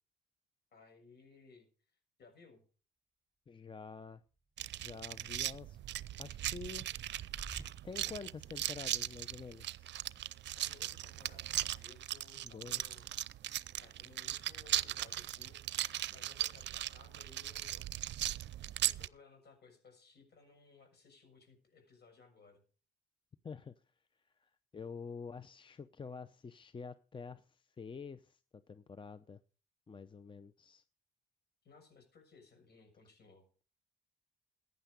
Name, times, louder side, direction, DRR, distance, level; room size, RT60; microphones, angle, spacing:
voice 1, 0.7-1.7 2.2-2.6 10.5-13.2 13.8-17.9 18.4-22.6 31.6-33.5, left 4 dB, 55° left, 5 dB, 6.9 m, -61 dB
voice 2, 3.5-4.2 4.8-5.8 6.2-6.9 7.8-9.9 12.4-13.1 23.4-23.7 24.4-28.4 28.7-29.4 29.9-30.8, left 5 dB, 25° left, 13 dB, 0.7 m, -48 dB
sound 1, 4.6-19.1, right 13 dB, 65° right, 0.5 m, -38 dB
sound 2, 5.8-7.6, right 3 dB, 15° right, 4.1 m, -54 dB
15.0 x 9.4 x 5.1 m, 0.38 s
cardioid pair, 90°, 20 cm